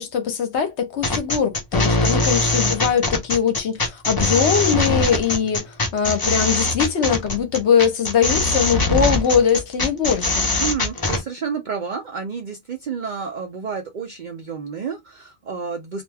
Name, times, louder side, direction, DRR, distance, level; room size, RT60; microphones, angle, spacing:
voice 1, 0.0-10.5, left 7 dB, 60° left, 0.9 m, -21 dB
sound 1, 1.0-11.2, left 2 dB, 35° left, 0.3 m, -21 dB
voice 2, 10.6-16.0, right 6 dB, 75° right, 0.4 m, -30 dB
2.5 x 2.2 x 3.2 m
omnidirectional pair, 1.4 m